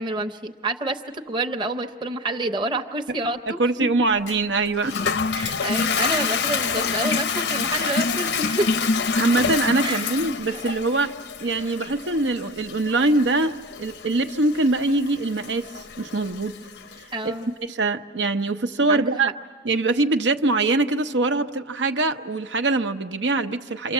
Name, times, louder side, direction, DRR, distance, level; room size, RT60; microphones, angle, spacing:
voice 1, 0.0-3.6 5.3-8.7 9.8-10.1 10.5-10.6 17.1-17.5 18.9-19.3, right 2 dB, 25° right, 4 dB, 0.8 m, -28 dB
voice 2, 3.5-5.0 9.2-11.1 11.4-16.5 17.2-17.3 17.7-19.3 19.6-23.9, right 2 dB, 90° right, 8 dB, 0.9 m, -23 dB
Toilet flush, 4.3-17.0, left 5 dB, 75° left, 0.7 m, -27 dB
28.0 x 25.5 x 7.4 m, 1.5 s
head